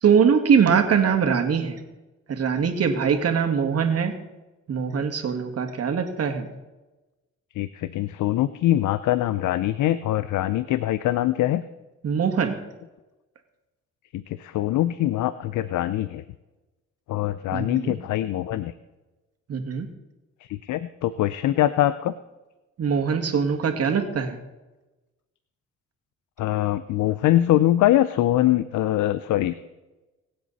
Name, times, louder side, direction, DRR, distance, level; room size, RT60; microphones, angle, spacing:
voice 1, 0.0-1.8 2.3-4.1 4.7-6.5 12.0-12.6 17.5-17.9 19.5-19.9 22.8-24.4, right 6 dB, 55° right, 5 dB, 2.1 m, -22 dB
voice 2, 7.6-11.6 14.5-16.2 17.1-18.7 20.7-22.1 26.4-29.5, left 13 dB, 75° left, 14 dB, 0.6 m, -23 dB
23.5 x 7.8 x 4.1 m, 1.1 s
cardioid pair, 90°, 30 cm